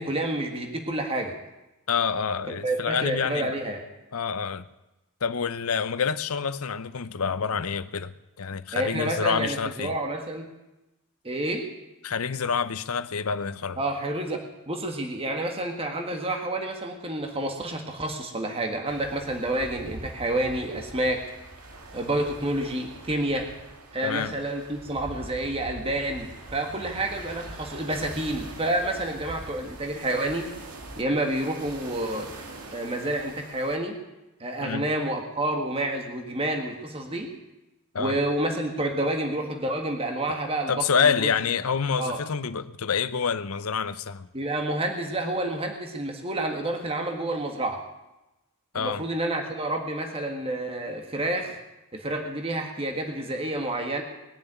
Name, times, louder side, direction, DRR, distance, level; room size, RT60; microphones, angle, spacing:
voice 1, 0.0-1.3 2.5-3.8 8.7-10.5 11.2-11.6 13.8-21.3 21.9-23.5 23.9-30.5 31.0-32.3 32.7-33.9 34.4-37.3 38.0-40.7 41.0-41.3 42.0-42.2 44.3-47.8 48.7-51.6 51.9-54.0, right 1 dB, 25° right, 1.6 m, -29 dB
voice 2, 1.9-3.5 4.1-4.6 5.2-8.1 8.4-9.9 12.0-13.8 24.0-24.3 34.6-34.9 37.9-38.2 40.7-44.3 48.7-49.0, left 6 dB, 70° left, 0.7 m, -27 dB
sound 1, 18.8-33.8, right 2 dB, 80° right, 2.1 m, -43 dB
20.5 x 7.0 x 9.3 m
head